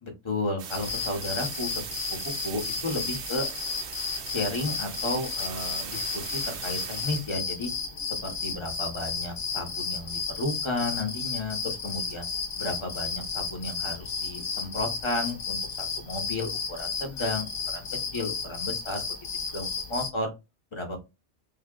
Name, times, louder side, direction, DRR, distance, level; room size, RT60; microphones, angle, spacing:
voice 1, 0.0-1.9 2.4-3.5 4.3-7.7 8.1-12.2 12.6-17.5 17.7-17.9 18.1-19.1 19.5-20.3 20.7-21.0, left 2 dB, 25° left, 2 dB, 1.1 m, -33 dB
sound 1, 0.6-7.3, right 7 dB, 60° right, 0.7 m, -39 dB
sound 2, 0.7-20.1, left 5 dB, 50° left, 1.2 m, -33 dB
3.7 x 2.3 x 3.7 m, 0.24 s
omnidirectional pair, 1.2 m